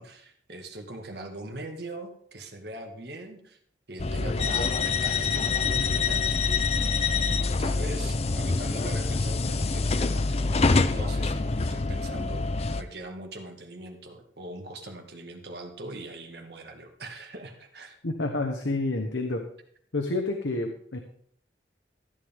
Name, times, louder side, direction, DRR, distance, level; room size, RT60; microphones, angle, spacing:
voice 1, 0.0-3.6 3.9-6.4 6.8-12.5 12.7-18.0, right 1 dB, 60° right, 4 dB, 1.8 m, -41 dB
sound 1, 4.0-12.8, left 4 dB, 35° left, 0.5 m, -26 dB
voice 2, 18.0-19.4 19.9-21.0, left 2 dB, 85° left, 4 dB, 1.2 m, -29 dB
14.0 x 9.7 x 3.6 m, 0.64 s
head